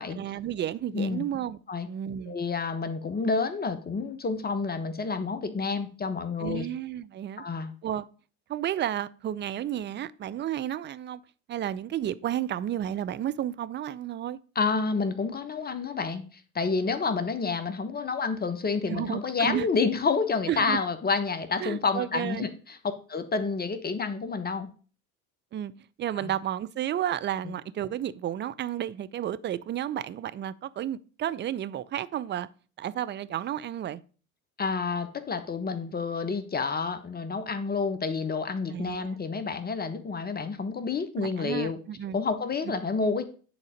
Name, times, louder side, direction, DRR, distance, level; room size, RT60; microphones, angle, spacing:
voice 1, 0.1-1.6 1.9-2.3 6.4-7.4 7.8-8.1 8.5-11.2 11.5-14.4 18.9-19.7 20.5-20.8 21.6-22.5 25.5-25.7 26.0-32.5 32.8-34.0 38.7-39.2 41.2-42.2 42.6-42.7, right 11 dB, 25° right, 0.5 m, -32 dB
voice 2, 2.3-6.7 7.4-7.7 14.5-22.8 23.1-24.7 26.2-26.3 27.4-27.5 34.6-41.8 42.1-43.2, left 4 dB, 20° left, 1.1 m, -29 dB
9.9 x 4.0 x 5.1 m
hypercardioid pair, 75°, 41 cm